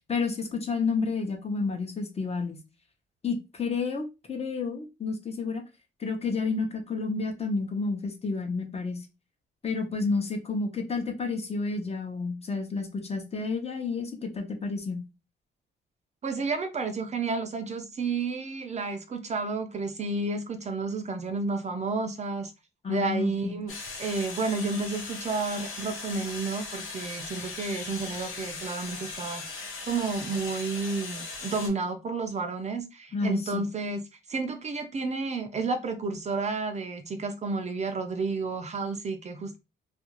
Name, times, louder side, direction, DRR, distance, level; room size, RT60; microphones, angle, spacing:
voice 1, 0.1-2.6 3.2-5.6 6.0-9.0 9.6-15.0 22.8-23.5 33.1-33.6, left 4 dB, 30° left, 0.7 m, -30 dB
voice 2, 16.2-22.5 22.9-23.7 24.0-34.0 34.3-39.6, right 4 dB, 35° right, 0.4 m, -31 dB
sound 1, 23.7-31.7, left 4 dB, 85° left, 0.9 m, -39 dB
2.4 x 2.3 x 3.0 m
cardioid pair, 90°, 20 cm